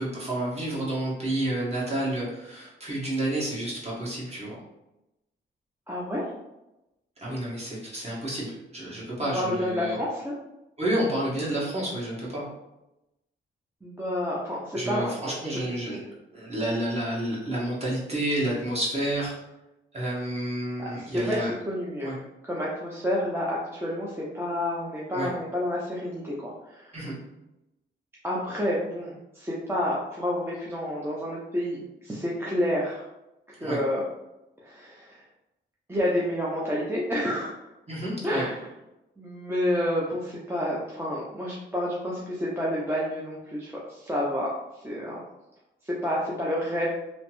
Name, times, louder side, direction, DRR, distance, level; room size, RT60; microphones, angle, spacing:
voice 1, 0.0-4.6 7.2-10.0 10.8-12.5 14.8-19.3 19.9-21.5 22.0-22.2 25.1-25.3 26.9-27.1 33.6-33.8 37.9-38.4, right 1 dB, 30° right, -6 dB, 1.4 m, -30 dB
voice 2, 5.9-6.2 9.2-10.3 13.8-15.5 20.8-22.1 22.4-27.0 28.2-33.1 33.5-34.0 34.6-35.3 35.9-37.7 38.2-38.7 39.2-45.2 45.8-46.9, equal, 10° right, -5 dB, 0.6 m, -29 dB
3.1 x 2.0 x 3.0 m, 0.92 s
cardioid pair, 70°, 20 cm